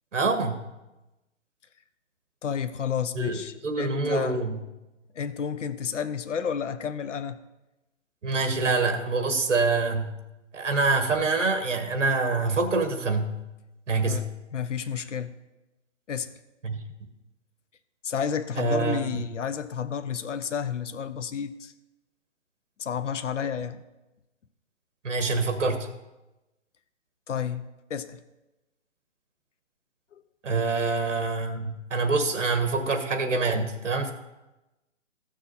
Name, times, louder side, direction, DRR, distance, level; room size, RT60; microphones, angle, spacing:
voice 1, 0.1-0.6 3.1-4.5 8.2-10.1 10.5-13.3 13.9-14.3 16.6-16.8 18.6-19.2 25.0-25.9 30.4-34.1, right 3 dB, 70° right, 8 dB, 1.6 m, -26 dB
voice 2, 2.4-4.4 5.1-7.4 14.0-15.3 16.1-16.3 18.0-21.7 22.8-23.8 27.3-28.2 30.1-30.2, left 7 dB, 70° left, 11 dB, 0.8 m, -31 dB
14.5 x 6.2 x 4.1 m, 1.0 s
hypercardioid pair, 175°, 37 cm